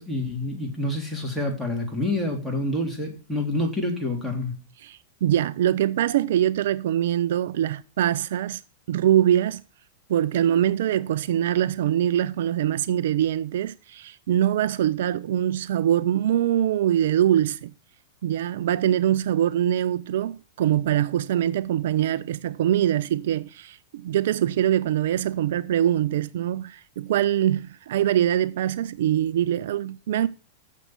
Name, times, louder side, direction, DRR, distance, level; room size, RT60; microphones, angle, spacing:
voice 1, 0.0-4.5, left 1 dB, ahead, 3.4 m, -27 dB
voice 2, 4.8-8.6 8.9-9.6 10.1-17.7 18.2-30.3, right 11 dB, 70° right, 0.4 m, -23 dB
7.2 x 6.8 x 8.0 m
hypercardioid pair, 115°, 0 cm